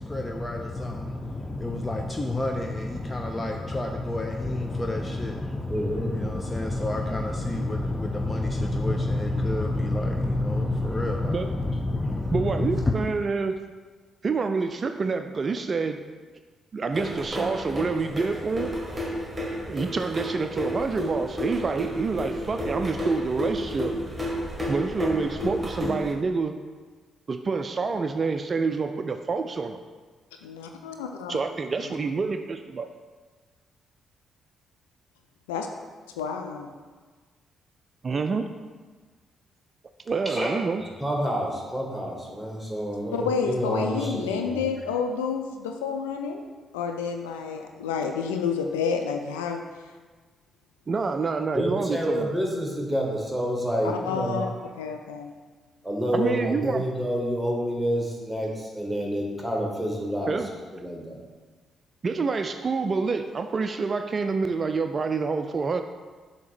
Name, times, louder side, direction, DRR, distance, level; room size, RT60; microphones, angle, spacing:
voice 1, 0.0-13.2, left 2 dB, 20° left, 0.6 m, -28 dB
voice 2, 5.7-6.2 40.3-40.5 41.0-44.7 51.5-54.4 55.8-60.4 60.7-61.2, equal, ahead, 1.8 m, -28 dB
voice 3, 12.3-13.6 14.2-16.0 16.7-18.7 19.7-23.9 24.7-26.5 27.3-29.8 31.3-32.9 38.0-38.5 40.1-40.8 50.9-52.3 56.1-56.8 60.3-60.5 62.0-65.8, right 4 dB, 40° right, 0.3 m, -27 dB
sound 1, 16.9-26.1, equal, 15° right, 1.3 m, -31 dB
voice 4, 30.4-31.4 31.8-31.9 35.5-35.7 36.1-36.7 43.1-46.5 46.7-49.6 53.8-54.5 54.8-55.3, left 6 dB, 80° left, 0.4 m, -29 dB
7.0 x 2.9 x 5.9 m
figure-of-eight pair, 40°, 0 cm